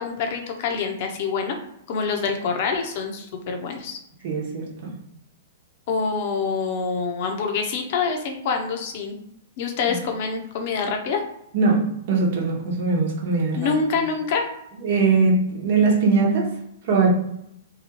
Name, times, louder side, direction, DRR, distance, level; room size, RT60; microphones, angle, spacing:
voice 1, 0.0-1.6 1.9-4.0 5.9-9.2 9.6-11.2 13.6-14.5, left 5 dB, 55° left, 3 dB, 0.7 m, -26 dB
voice 2, 4.2-4.9 11.5-14.0 14.8-16.5 16.8-17.1, right 4 dB, 55° right, -1 dB, 0.9 m, -21 dB
2.8 x 2.3 x 3.0 m, 0.76 s
hypercardioid pair, 110°, 0 cm